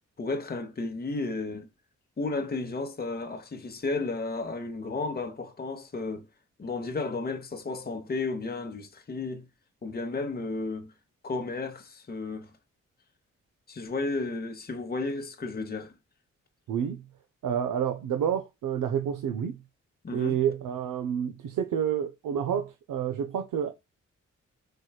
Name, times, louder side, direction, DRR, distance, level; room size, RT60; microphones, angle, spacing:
voice 1, 0.2-1.7 2.2-6.3 6.6-9.5 9.8-10.9 11.2-12.5 13.7-15.9 20.0-20.4, left 3 dB, 30° left, 0.9 m, -33 dB
voice 2, 16.7-17.0 17.4-19.6 20.1-23.7, right 9 dB, 80° right, 0.6 m, -29 dB
4.4 x 3.1 x 2.3 m
cardioid pair, 55°, 32 cm